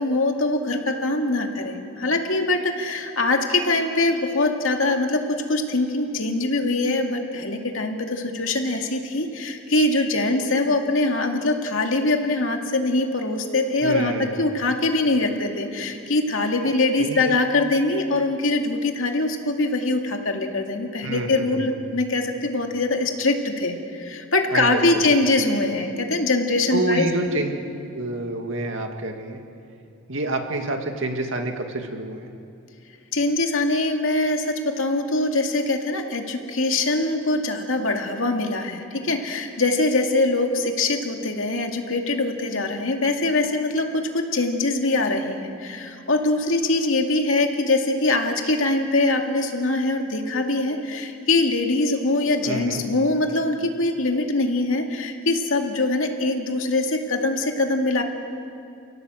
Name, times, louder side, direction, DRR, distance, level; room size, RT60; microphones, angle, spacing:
voice 1, 0.0-27.1 33.1-58.0, left 2 dB, 80° left, 3 dB, 2.3 m, -23 dB
voice 2, 13.8-14.4 17.0-17.3 21.0-21.8 24.5-25.1 26.7-27.5 27.9-29.4 30.1-32.3 52.4-52.8, right 2 dB, 70° right, 4 dB, 2.3 m, -28 dB
30.0 x 17.5 x 7.8 m, 2.6 s
head